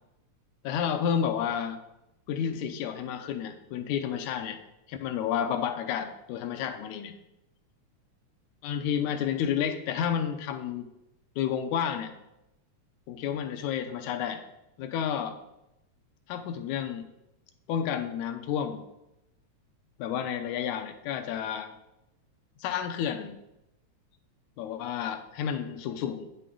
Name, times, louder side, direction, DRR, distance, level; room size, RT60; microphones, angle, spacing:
voice 1, 0.6-1.8 2.3-4.6 4.9-7.2 8.6-10.9 11.4-12.1 13.1-14.4 14.8-15.4 16.3-17.1 17.7-18.8 20.0-21.7 22.6-23.4 24.6-26.3, left 8 dB, 90° left, 8 dB, 2.0 m, -30 dB
8.4 x 6.9 x 3.7 m, 0.88 s
omnidirectional pair, 3.4 m